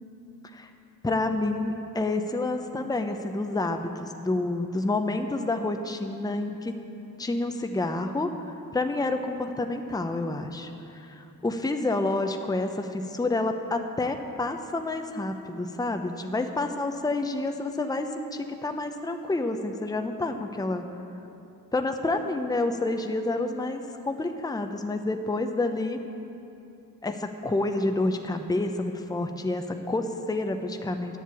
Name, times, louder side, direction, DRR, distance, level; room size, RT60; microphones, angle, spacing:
voice 1, 1.0-6.7 7.2-8.3 8.7-20.8 21.7-26.0 27.0-31.2, left 2 dB, 10° left, 6 dB, 0.7 m, -29 dB
10.5 x 7.6 x 8.3 m, 2.8 s
cardioid pair, 85°, 36 cm